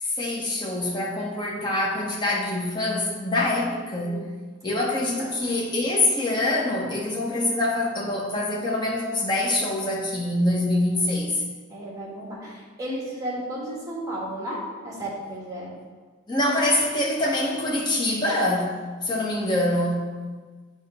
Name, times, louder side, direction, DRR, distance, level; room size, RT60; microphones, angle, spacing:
voice 1, 0.0-4.3 4.6-11.4 16.3-20.2, left 1 dB, 20° left, -3 dB, 1.0 m, -25 dB
voice 2, 11.7-15.8, right 1 dB, 15° right, -5 dB, 1.6 m, -34 dB
8.9 x 3.1 x 5.4 m, 1.4 s
head